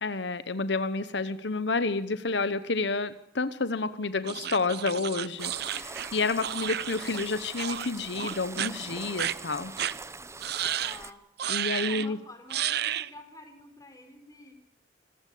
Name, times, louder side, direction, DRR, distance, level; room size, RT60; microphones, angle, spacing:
voice 1, 0.0-9.7 11.5-12.2, left 3 dB, 75° left, 13 dB, 1.1 m, -30 dB
sound 1, 4.3-7.3 7.6-7.9 8.2-8.7 9.2-9.3 9.8-9.9 10.4-11.0 11.4-12.1 12.5-13.1, right 10 dB, 65° right, 0.8 m, -32 dB
sound 2, 5.4-11.1, right 3 dB, 15° right, 0.9 m, -42 dB
voice 2, 10.8-11.3 11.8-14.5, left 1 dB, 20° left, 6 dB, 4.5 m, -49 dB
26.0 x 15.5 x 8.4 m, 0.79 s
head